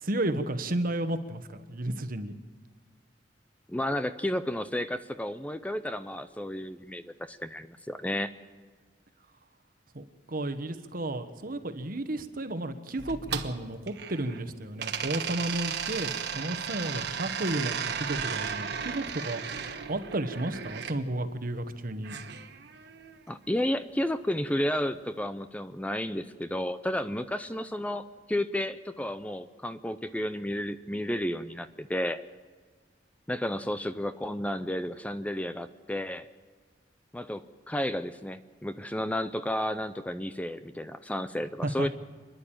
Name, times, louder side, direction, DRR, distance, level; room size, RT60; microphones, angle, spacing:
voice 1, 0.0-2.3 9.9-19.4 19.9-22.2 41.6-41.9, right 1 dB, 50° right, 9 dB, 1.3 m, -33 dB
voice 2, 3.7-8.3 23.3-32.2 33.3-36.3 37.1-41.9, left 1 dB, 10° left, 11 dB, 0.5 m, -32 dB
sound 1, 13.0-14.4 14.8-21.0 22.0-23.2, right 7 dB, 65° right, 1.3 m, -35 dB
27.0 x 11.0 x 8.9 m, 1.5 s
head